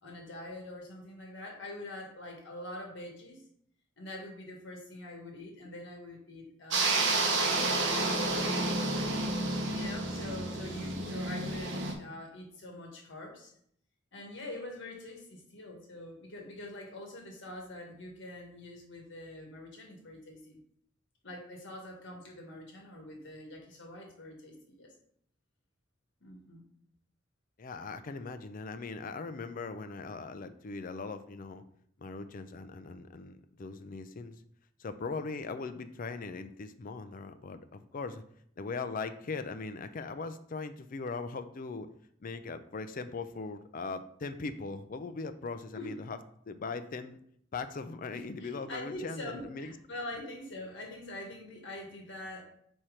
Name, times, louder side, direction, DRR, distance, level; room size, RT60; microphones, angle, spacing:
voice 1, 0.0-3.4 4.0-8.8 9.7-13.5 14.1-20.6 21.2-24.9 26.2-26.6 45.7-45.9 48.1-52.4, left 1 dB, 65° left, 1 dB, 1.6 m, -44 dB
sound 1, 6.7-11.9, right 2 dB, 70° right, 1.1 m, -30 dB
voice 2, 27.6-31.6 32.0-34.4 34.8-38.2 38.6-41.9 42.2-46.2 46.5-47.2 47.5-49.7, left 4 dB, 45° left, 10 dB, 0.4 m, -40 dB
4.5 x 4.4 x 4.9 m, 0.66 s
head